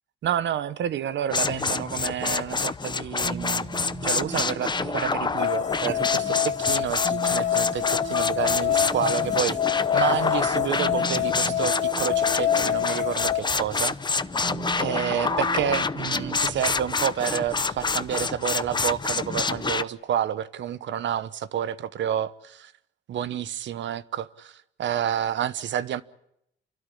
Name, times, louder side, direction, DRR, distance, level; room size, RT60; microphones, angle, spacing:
voice 1, 0.2-9.6 9.9-14.0 14.8-22.7 23.1-26.0, right 10 dB, 65° right, 1.0 m, -29 dB
sound 1, 1.3-19.8, left 4 dB, 20° left, 0.8 m, -27 dB
sound 2, 3.2-18.8, right 6 dB, 35° right, 1.7 m, -40 dB
sound 3, 5.4-13.4, left 11 dB, 40° left, 1.2 m, -26 dB
29.0 x 12.5 x 10.0 m
cardioid pair, 90°, 20 cm